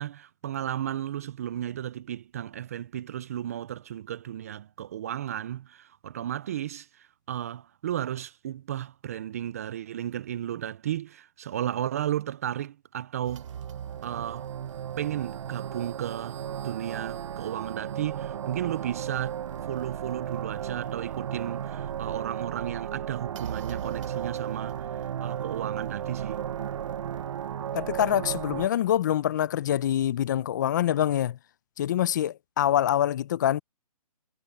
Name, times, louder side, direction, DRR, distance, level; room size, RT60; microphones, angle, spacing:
voice 1, 0.0-13.5 14.0-14.5 15.0-19.4 19.7-26.5, right 11 dB, 25° right, 0.4 m, -34 dB
sound 1, 13.3-28.7, right 9 dB, 50° right, 0.8 m, -35 dB
voice 2, 27.7-31.4 31.8-33.6, left 11 dB, 30° left, 0.5 m, -25 dB
hypercardioid pair, 160°, 20 cm